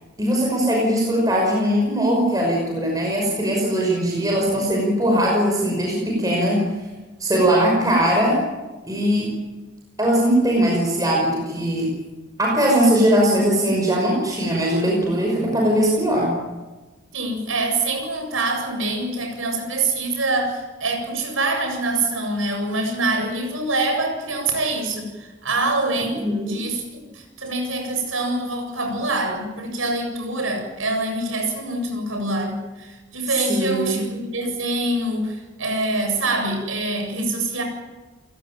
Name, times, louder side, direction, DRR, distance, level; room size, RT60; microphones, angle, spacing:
voice 1, 0.2-6.6 7.2-8.4 8.8-9.3 10.0-11.9 12.4-16.3 26.2-26.6 33.3-34.0, equal, 20° right, -1 dB, 5.8 m, -20 dB
voice 2, 17.1-37.6, right 2 dB, 90° right, 4 dB, 7.7 m, -25 dB
29.0 x 17.0 x 9.1 m, 1.2 s
head